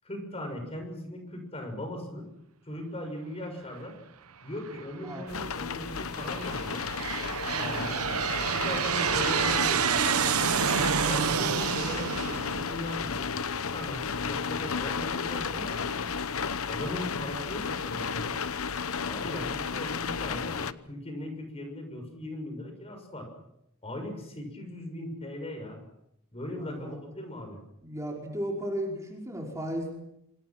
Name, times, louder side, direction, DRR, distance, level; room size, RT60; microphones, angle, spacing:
voice 1, 0.0-2.3 2.6-4.0 4.4-6.9 7.6-8.1 8.5-10.6 11.0-13.3 13.6-16.1 16.7-18.4 19.0-23.3 23.8-25.8 26.3-27.6, left 1 dB, 30° left, 5 dB, 6.8 m, -39 dB
Aircraft, 4.7-5.2 5.9-13.5, right 7 dB, 85° right, 1.0 m, -29 dB
sound 1, 5.3-20.7, left 5 dB, 75° left, 1.0 m, -33 dB
voice 2, 7.4-8.1 26.5-27.0 27.8-29.9, equal, 15° right, -1 dB, 5.0 m, -35 dB
27.0 x 26.0 x 6.1 m, 0.79 s
head